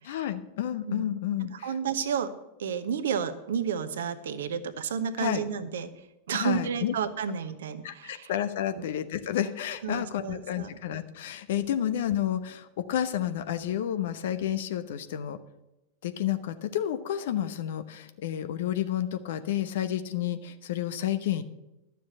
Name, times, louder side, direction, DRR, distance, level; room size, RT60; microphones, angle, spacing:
voice 1, 0.0-1.7 5.2-5.4 6.3-6.9 7.8-15.4 16.0-21.4, left 11 dB, 55° left, 10 dB, 0.9 m, -30 dB
voice 2, 1.5-2.3 2.6-5.9 6.3-8.3 8.7-8.8 9.8-10.7 11.8-11.9, right 7 dB, 60° right, 11 dB, 1.0 m, -31 dB
12.5 x 6.9 x 7.7 m, 0.94 s
figure-of-eight pair, 90°, 0 cm